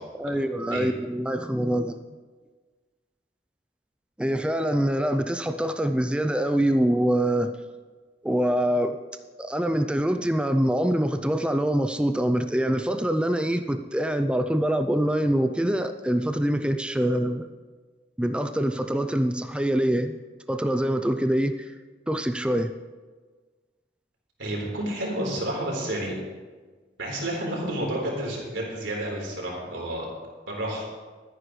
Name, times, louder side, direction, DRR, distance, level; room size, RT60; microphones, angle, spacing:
voice 1, 0.2-2.0 4.2-7.5 8.2-9.0 9.4-17.5 18.2-20.2 20.5-21.7 22.1-22.7, right 1 dB, 5° right, 8 dB, 0.4 m, -24 dB
voice 2, 24.4-26.1 27.0-30.0 30.5-30.9, right 1 dB, 90° right, -2 dB, 4.2 m, -30 dB
23.5 x 9.7 x 3.2 m, 1.4 s
head